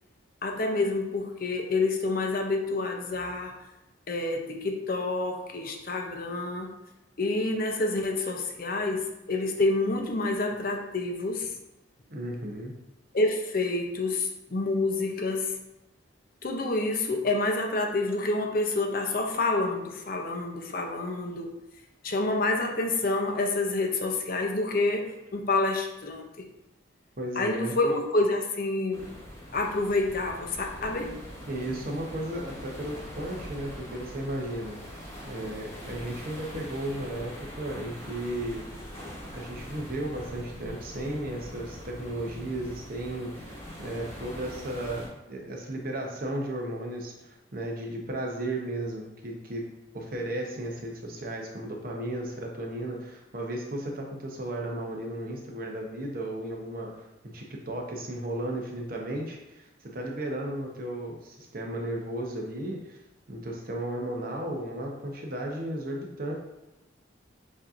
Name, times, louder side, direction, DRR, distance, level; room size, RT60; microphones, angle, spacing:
voice 1, 0.4-3.5 4.1-6.7 7.2-11.5 13.1-15.6 16.4-21.6 22.0-26.5 27.4-29.1 29.5-31.2, left 2 dB, 50° left, 2 dB, 0.6 m, -28 dB
voice 2, 12.1-12.7 27.2-27.8 31.5-38.6 39.3-43.5 43.8-63.0 63.3-66.3, right 1 dB, 50° right, 0 dB, 0.8 m, -35 dB
sound 1, 28.9-45.1, equal, 15° left, 1.1 m, -42 dB
7.2 x 2.7 x 2.5 m, 0.97 s
head